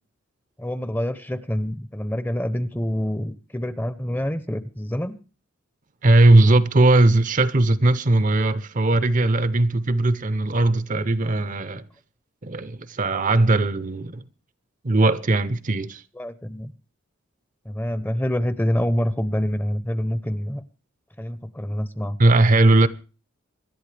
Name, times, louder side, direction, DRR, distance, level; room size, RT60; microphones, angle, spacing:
voice 1, 0.6-5.2 16.1-16.7 17.6-20.6 21.2-22.2, equal, 10° left, 0.7 m, -26 dB
voice 2, 6.0-11.8 12.4-14.2 14.8-16.0 22.2-22.9, right 2 dB, 35° right, 0.6 m, -18 dB
25.0 x 11.0 x 3.3 m
head